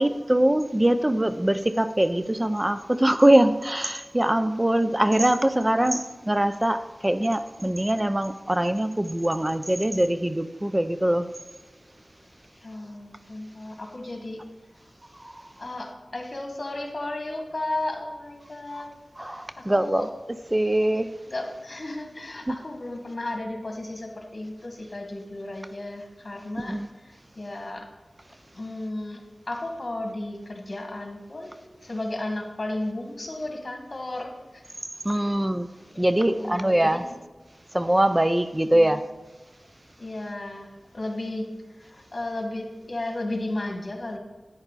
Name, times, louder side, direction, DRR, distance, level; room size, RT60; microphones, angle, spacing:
voice 1, 0.0-11.2 19.2-20.1 20.5-21.1 22.5-22.6 26.7-26.9 35.0-35.7 36.0-37.0 37.7-39.0, right 1 dB, 20° right, 11 dB, 0.5 m, -22 dB
voice 2, 12.6-14.4 15.6-18.9 19.3-20.0 21.3-27.9 28.5-31.6 31.8-34.6 35.2-35.3 35.9-37.2 38.7-39.0 40.0-41.5 41.8-44.2, left 2 dB, 55° left, 3 dB, 1.9 m, -34 dB
10.0 x 9.6 x 4.1 m, 1.2 s
wide cardioid pair, 50°, 0 cm